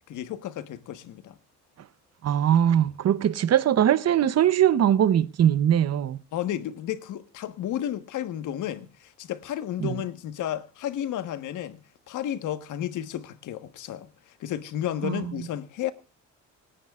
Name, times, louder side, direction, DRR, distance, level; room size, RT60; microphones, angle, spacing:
voice 1, 0.1-1.4 6.3-11.8 12.1-15.9, left 11 dB, 80° left, 1.4 m, -32 dB
voice 2, 2.2-6.2 9.8-10.0 15.0-15.5, right 10 dB, 55° right, 0.9 m, -21 dB
26.5 x 10.0 x 2.4 m
cardioid pair, 90°, 30 cm